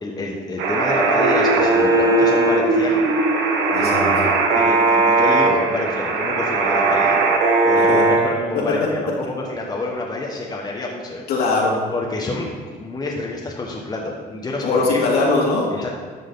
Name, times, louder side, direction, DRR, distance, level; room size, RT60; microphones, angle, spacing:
voice 1, 0.0-3.0 3.8-7.2 7.6-11.2 11.9-15.0 15.7-16.0, left 2 dB, 25° left, -1 dB, 1.4 m, -28 dB
sound 1, 0.6-8.2, right 3 dB, 80° right, 1.5 m, -19 dB
sound 2, 1.2-4.8, right 1 dB, 45° right, 1.1 m, -23 dB
voice 2, 3.7-4.1 7.8-8.0 8.5-8.9 11.3-11.8 14.6-15.7, left 3 dB, 70° left, -3 dB, 2.5 m, -20 dB
12.5 x 6.2 x 4.0 m, 1.5 s
cardioid pair, 110°, 17 cm